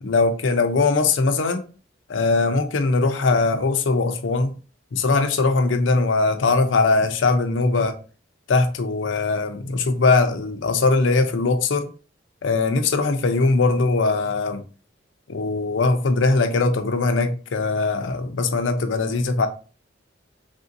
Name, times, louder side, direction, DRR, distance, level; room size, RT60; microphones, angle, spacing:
voice 1, 0.0-1.6 2.1-4.5 4.9-7.9 8.5-11.9 12.4-14.6 15.3-19.5, left 3 dB, 90° left, 0.5 m, -20 dB
3.5 x 2.6 x 2.5 m
head